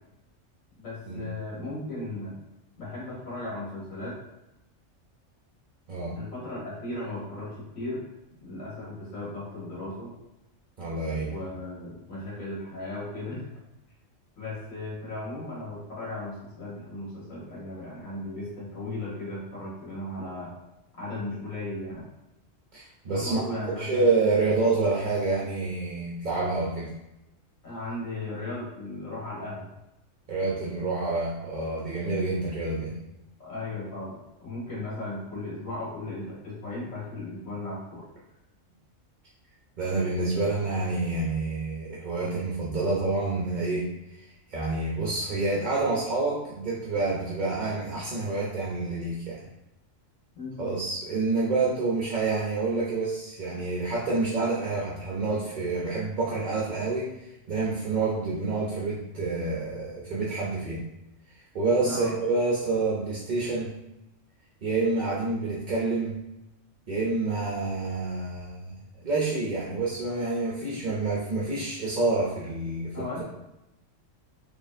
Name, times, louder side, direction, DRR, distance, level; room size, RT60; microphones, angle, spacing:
voice 1, 0.8-2.3 2.8-4.2 6.2-8.0 8.4-10.1 11.3-13.5 14.4-20.5 21.0-22.0 23.0-24.1 27.6-29.7 33.4-38.0 50.3-50.7 61.8-62.1 72.9-73.2, left 2 dB, 80° left, -7 dB, 1.9 m, -36 dB
voice 2, 5.9-6.2 10.8-11.4 22.7-26.9 30.3-33.0 39.8-49.5 50.6-60.8 61.3-63.8 64.6-66.2 66.9-68.7 69.0-73.2, right 3 dB, 50° right, -4 dB, 0.6 m, -28 dB
4.1 x 3.0 x 2.6 m, 0.92 s
omnidirectional pair, 1.4 m